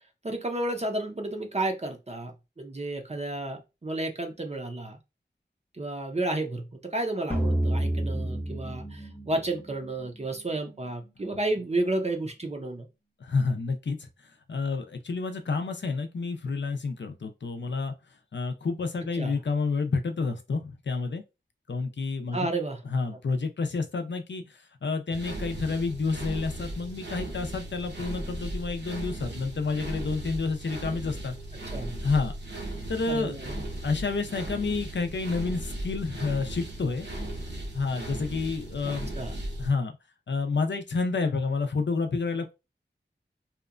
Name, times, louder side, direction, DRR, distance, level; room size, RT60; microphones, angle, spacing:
voice 1, 0.2-5.0 5.7-12.9 19.2-19.4 22.3-22.8 31.7-32.0 33.1-33.6 38.8-39.3, right 2 dB, 35° right, 0.5 m, -32 dB
sound 1, 7.3-10.6, right 1 dB, 10° left, 0.6 m, -29 dB
voice 2, 13.2-14.1 14.5-17.9 18.3-21.2 21.7-22.5 22.9-24.4 24.8-31.3 32.0-32.3 32.9-33.4 33.8-37.1 37.7-39.1 39.6-39.9 40.3-42.5, left 4 dB, 70° left, 0.5 m, -29 dB
sound 2, 25.1-39.7, right 1 dB, 70° right, 0.8 m, -37 dB
2.8 x 2.1 x 2.4 m
wide cardioid pair, 50°, 19 cm